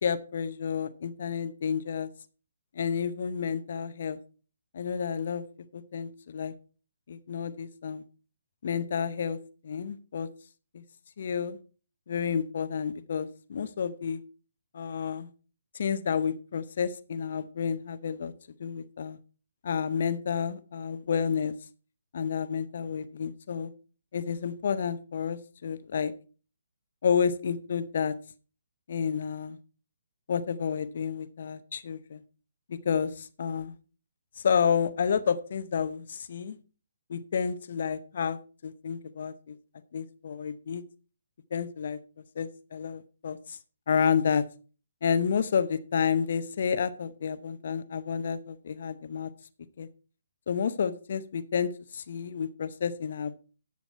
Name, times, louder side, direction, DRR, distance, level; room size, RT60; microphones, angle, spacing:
voice 1, 0.0-2.1 2.8-4.2 4.7-5.4 5.7-6.5 7.1-8.0 8.6-9.4 9.6-10.3 10.7-10.8 11.2-11.6 12.1-14.2 14.7-15.3 15.7-18.3 18.6-19.2 19.6-21.5 22.1-23.7 24.1-26.1 27.0-28.2 28.9-29.6 30.3-32.2 32.7-33.7 34.4-36.6 37.1-39.6 39.9-40.8 41.5-42.0 42.4-43.6 43.9-44.4 45.0-49.3 49.8-49.9 50.5-53.4, left 7 dB, 55° left, 13 dB, 0.7 m, -30 dB
11.0 x 7.4 x 4.4 m, 0.37 s
figure-of-eight pair, 135°, 0 cm